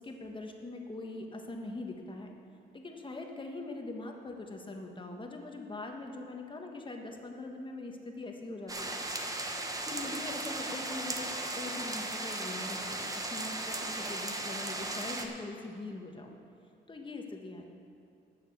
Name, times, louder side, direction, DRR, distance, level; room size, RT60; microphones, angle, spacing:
voice 1, 0.0-2.3 2.7-9.0 9.8-11.3 11.5-16.4 16.9-17.6, left 2 dB, 25° left, 2 dB, 1.4 m, -42 dB
sound 1, 8.7-15.3, right 2 dB, 15° right, 1.1 m, -36 dB
11.5 x 7.3 x 6.9 m, 2.5 s
cardioid pair, 90°, 20 cm